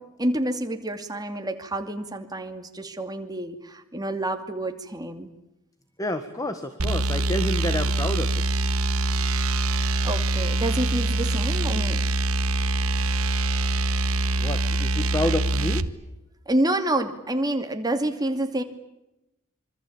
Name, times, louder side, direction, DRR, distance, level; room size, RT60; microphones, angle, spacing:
voice 1, 0.0-5.3 10.0-12.0 16.5-18.6, right 1 dB, 20° right, 6 dB, 2.6 m, -28 dB
voice 2, 6.0-8.4 13.6-14.0 14.4-15.8, left 1 dB, 15° left, 9 dB, 1.6 m, -29 dB
sound 1, 6.8-15.9, right 2 dB, 80° right, 1.3 m, -24 dB
26.5 x 25.0 x 8.8 m, 0.93 s
head